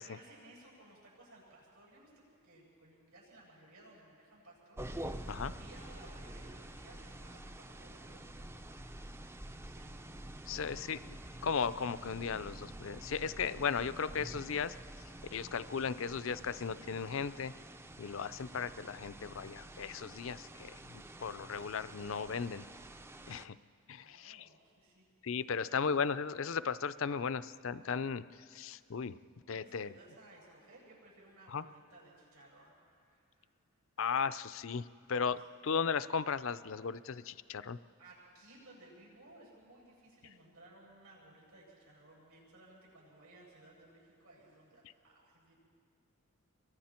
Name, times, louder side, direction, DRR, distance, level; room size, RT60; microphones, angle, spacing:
voice 1, 0.0-8.8 9.1-10.0 10.5-11.0 24.0-25.1 28.6-28.8 29.5-33.5 35.4-35.5 38.0-45.5, right 1 dB, 85° right, -4 dB, 7.5 m, -59 dB
sound 1, 4.8-23.5, right 1 dB, 10° right, 0.4 m, -48 dB
voice 2, 10.5-14.7 15.3-17.5 18.0-22.7 23.3-23.6 23.9-24.5 25.2-28.2 28.5-29.2 29.5-29.9 31.5-31.6 34.0-37.8, left 6 dB, 65° left, 15 dB, 0.5 m, -36 dB
29.5 x 23.0 x 4.4 m, 2.3 s
head